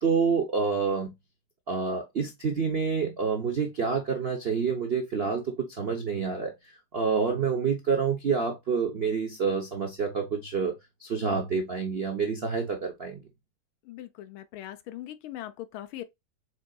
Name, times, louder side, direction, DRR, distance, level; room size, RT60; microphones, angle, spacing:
voice 1, 0.0-1.1 1.7-6.5 6.9-10.7 11.0-13.2, right 5 dB, 75° right, 0.5 m, -28 dB
voice 2, 13.8-16.0, left 13 dB, 75° left, 1.5 m, -40 dB
5.9 x 3.8 x 2.3 m
omnidirectional pair, 2.4 m